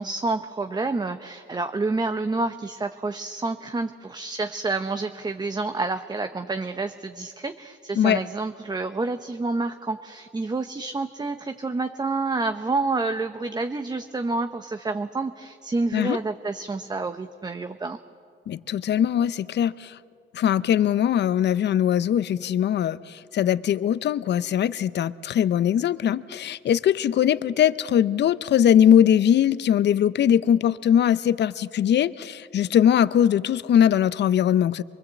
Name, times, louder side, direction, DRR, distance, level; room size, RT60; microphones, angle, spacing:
voice 1, 0.0-18.0, right 3 dB, 20° right, 8 dB, 0.8 m, -28 dB
voice 2, 18.5-20.0 20.3-34.8, left 9 dB, 60° left, 16 dB, 0.7 m, -21 dB
24.0 x 23.5 x 8.2 m, 2.4 s
cardioid pair, 90°, 20 cm